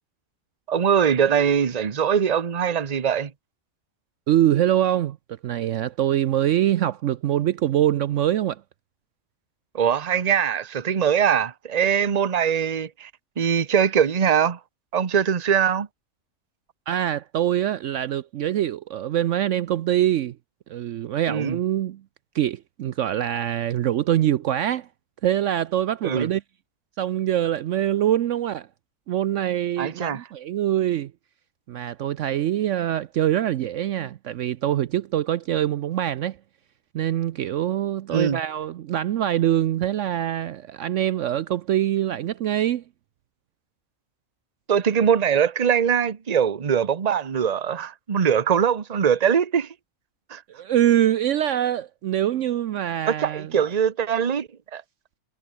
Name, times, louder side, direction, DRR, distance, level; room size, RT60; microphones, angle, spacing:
voice 1, 0.7-3.3 9.7-13.1 13.4-14.6 14.9-15.9 21.3-21.6 26.0-26.3 29.8-30.2 38.1-38.4 44.7-49.7 50.3-50.4 53.1-54.8, right 7 dB, 35° right, 0.9 m, -22 dB
voice 2, 4.3-5.2 5.4-8.6 16.9-20.4 20.7-22.0 22.3-24.9 25.2-26.4 27.0-28.7 29.1-31.1 31.7-36.4 36.9-42.8 50.5-53.7, right 11 dB, 65° right, 0.9 m, -24 dB
omnidirectional pair, 1.5 m